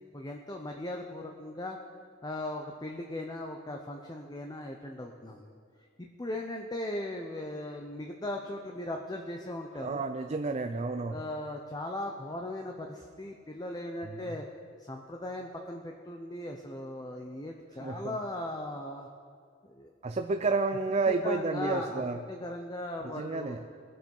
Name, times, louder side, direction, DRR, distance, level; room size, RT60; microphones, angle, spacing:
voice 1, 0.1-1.8 2.2-5.5 6.0-10.0 11.1-14.5 14.9-19.1 19.6-19.9 21.2-23.6, left 1 dB, 20° left, 2 dB, 0.7 m, -38 dB
voice 2, 9.8-11.2 14.1-14.2 17.8-18.2 20.0-22.2 23.0-23.6, right 3 dB, 35° right, 6 dB, 0.5 m, -31 dB
20.5 x 7.6 x 5.5 m, 2.2 s
head